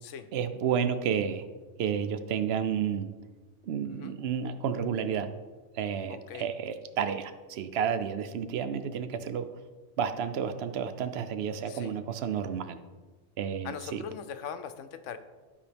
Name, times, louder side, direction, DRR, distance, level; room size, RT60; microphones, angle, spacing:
voice 1, 0.3-1.4 1.8-3.1 3.6-5.3 5.8-9.5 10.0-12.8 13.4-14.0, right 7 dB, 65° right, 10 dB, 0.8 m, -31 dB
voice 2, 3.8-4.2 6.1-6.5 11.7-12.0 13.6-15.2, left 8 dB, 85° left, 10 dB, 1.0 m, -41 dB
12.5 x 4.9 x 3.4 m, 1.3 s
omnidirectional pair, 1.3 m